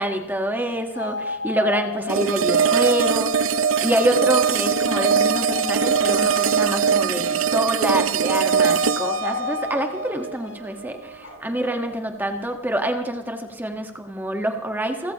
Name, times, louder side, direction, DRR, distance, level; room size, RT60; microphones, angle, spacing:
voice 1, 0.0-3.5 3.8-15.1, right 1 dB, 10° right, 4 dB, 1.4 m, -26 dB
sound 1, 0.9-7.9 8.2-10.6, left 6 dB, 60° left, 1.2 m, -32 dB
sound 2, 2.1-11.1, right 7 dB, 85° right, 0.5 m, -22 dB
sound 3, 9.2-9.9 11.1-13.0, left 3 dB, 85° left, 4.7 m, -45 dB
28.5 x 16.0 x 3.0 m, 0.94 s
head